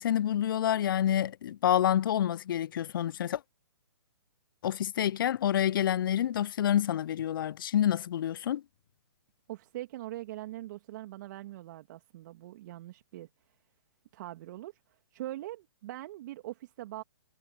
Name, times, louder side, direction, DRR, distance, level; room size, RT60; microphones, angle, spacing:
voice 1, 0.0-3.4 4.6-8.6, left 10 dB, 55° left, 0.5 m, -28 dB
voice 2, 9.5-13.3 14.1-17.0, right 15 dB, 45° right, 2.6 m, -42 dB
figure-of-eight pair, 125°, 14 cm